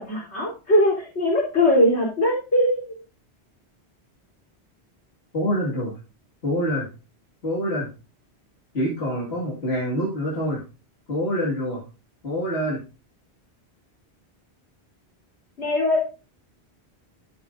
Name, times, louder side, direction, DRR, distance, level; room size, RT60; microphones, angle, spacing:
voice 1, 0.0-2.9 15.6-16.1, left 1 dB, 90° left, -4 dB, 3.8 m, -21 dB
voice 2, 5.3-5.9 6.4-6.9 7.4-7.9 8.7-10.6 11.1-11.8 12.2-12.8, equal, 70° left, -4 dB, 2.4 m, -25 dB
11.0 x 8.0 x 2.6 m, 0.32 s
omnidirectional pair, 1.1 m